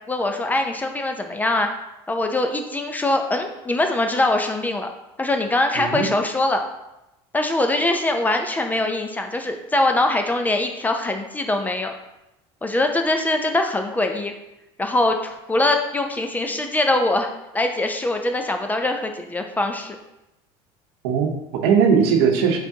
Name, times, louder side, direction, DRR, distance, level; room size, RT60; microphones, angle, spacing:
voice 1, 0.1-1.7 2.1-4.9 5.2-6.6 7.3-11.9 12.6-14.3 14.8-20.0, left 2 dB, 15° left, 5 dB, 0.4 m, -22 dB
voice 2, 5.8-6.1 21.0-22.6, right 6 dB, 85° right, 3 dB, 0.8 m, -19 dB
4.7 x 3.9 x 2.8 m, 0.91 s
supercardioid pair, 120°, 13 cm